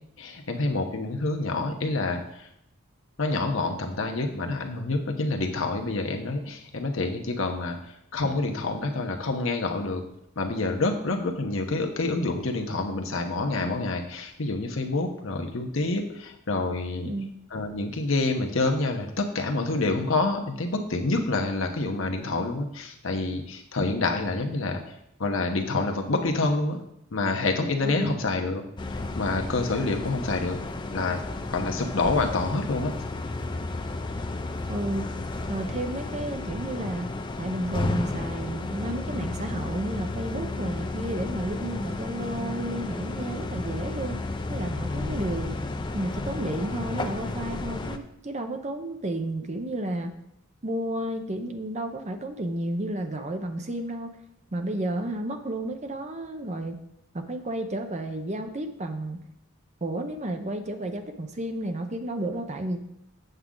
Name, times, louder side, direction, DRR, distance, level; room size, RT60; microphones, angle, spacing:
voice 1, 0.2-2.2 3.2-7.8 8.1-10.0 10.4-17.1 17.5-24.8 25.2-26.8 27.1-28.6 29.2-30.6 30.9-31.2 31.5-33.0, left 2 dB, 65° left, 3 dB, 1.0 m, -27 dB
voice 2, 27.8-28.2 34.7-35.1 35.5-45.6 45.9-50.2 50.6-54.2 54.5-56.8 57.1-59.2 59.8-62.8, right 1 dB, 30° right, 6 dB, 0.7 m, -32 dB
sound 1, 28.8-48.0, left 2 dB, 20° left, 0.4 m, -32 dB
8.0 x 7.1 x 3.8 m, 0.79 s
head